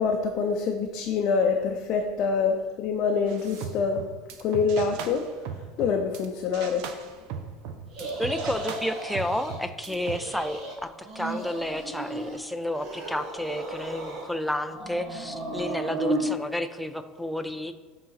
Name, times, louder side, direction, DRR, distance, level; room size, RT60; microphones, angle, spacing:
voice 1, 0.0-4.0 4.4-5.3 5.8-6.9, left 5 dB, 40° left, 2 dB, 0.6 m, -25 dB
sound 1, 3.3-6.3 6.5-10.2, right 7 dB, 60° right, 0.7 m, -38 dB
sound 2, 7.9-9.6 9.9-10.7 11.0-12.4 12.7-14.4 14.7-16.2, right 2 dB, 40° right, 1.4 m, -34 dB
voice 2, 8.2-17.7, left 1 dB, ahead, 8 dB, 0.4 m, -31 dB
8.2 x 3.9 x 5.7 m, 1.4 s
cardioid pair, 160°, 0 cm